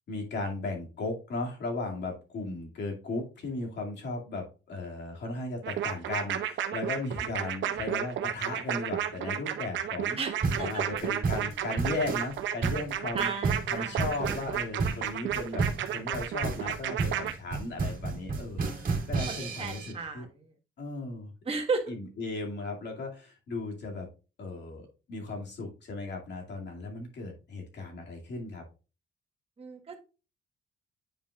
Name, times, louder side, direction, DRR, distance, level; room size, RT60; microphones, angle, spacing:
voice 1, 0.1-10.2 10.6-13.3 13.7-20.3 20.8-21.3 21.9-24.1 24.4-28.6, left 2 dB, 60° left, 1 dB, 2.3 m, -36 dB
sound 1, 5.6-17.3, right 10 dB, 70° right, 0.8 m, -32 dB
voice 2, 10.2-10.8 13.1-14.1 19.3-20.3 21.4-21.9 29.6-30.0, right 4 dB, 30° right, 2 dB, 1.3 m, -34 dB
sound 2, 10.4-19.9, right 4 dB, 45° right, 2.0 m, -32 dB
9.0 x 5.1 x 2.4 m, 0.31 s
cardioid pair, 90°, 20 cm